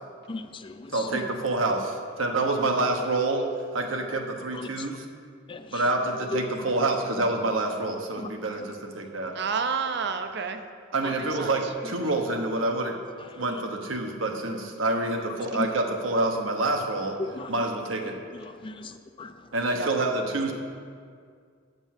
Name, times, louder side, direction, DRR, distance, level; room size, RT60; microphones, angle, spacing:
voice 1, 0.3-1.0 4.5-4.7 5.5-5.8 8.2-8.3 11.0-11.1 13.5-13.6 15.5-15.7 17.2-17.5 18.4-19.3, left 3 dB, 25° left, 9 dB, 0.4 m, -36 dB
voice 2, 0.9-3.5 3.7-5.0 5.7-9.3 10.9-12.9 13.4-17.2 17.5-18.1 19.5-20.5, right 2 dB, 75° right, 2 dB, 1.1 m, -27 dB
voice 3, 9.3-10.6 11.0-11.5 17.3-17.4 19.7-19.9, right 5 dB, 60° right, 8 dB, 0.6 m, -30 dB
9.2 x 5.4 x 7.3 m, 2.1 s
head